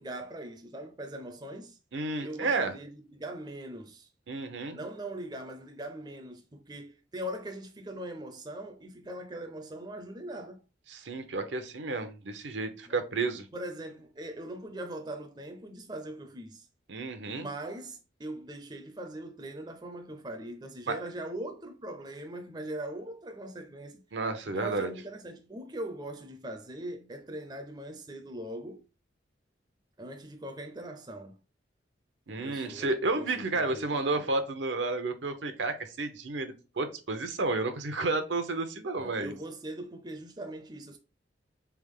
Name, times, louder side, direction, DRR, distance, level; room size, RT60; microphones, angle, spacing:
voice 1, 0.0-1.8 2.2-4.1 4.7-10.6 12.9-13.0 13.5-16.7 17.3-24.0 24.5-28.8 30.0-31.4 32.3-34.2 39.0-41.0, right 1 dB, 20° right, 0.5 m, -41 dB
voice 2, 1.9-2.7 4.3-4.8 10.9-13.5 16.9-17.5 20.9-21.0 24.1-24.9 32.3-39.3, right 3 dB, 80° right, 0.8 m, -31 dB
3.5 x 3.4 x 3.6 m
head